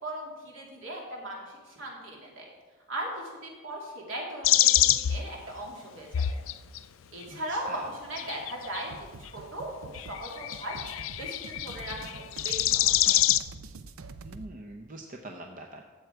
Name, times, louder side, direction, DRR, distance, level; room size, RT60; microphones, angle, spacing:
voice 1, 0.0-2.5 2.9-6.4 7.1-10.8 11.2-13.2, right 1 dB, 65° right, -1 dB, 2.8 m, -38 dB
sound 1, 4.4-5.2 6.1-6.8 8.2-8.8 9.9-13.4, left 13 dB, 70° left, 0.4 m, -25 dB
voice 2, 7.3-7.9 14.2-15.9, right 2 dB, 40° right, 3 dB, 0.7 m, -44 dB
sound 2, 8.9-14.5, right 3 dB, 80° right, 0.6 m, -45 dB
13.0 x 7.7 x 4.6 m, 1.3 s
head